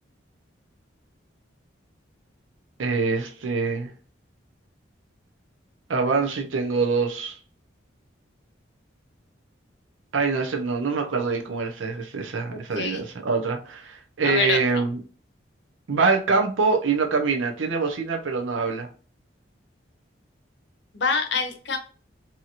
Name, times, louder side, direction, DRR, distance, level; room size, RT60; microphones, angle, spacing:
voice 1, 2.8-3.9 5.9-7.4 10.1-15.0 15.9-18.9, right 4 dB, 85° right, 0.6 m, -24 dB
voice 2, 12.5-13.0 14.2-14.6 20.9-21.8, left 4 dB, 60° left, 0.7 m, -26 dB
2.8 x 2.8 x 2.4 m
head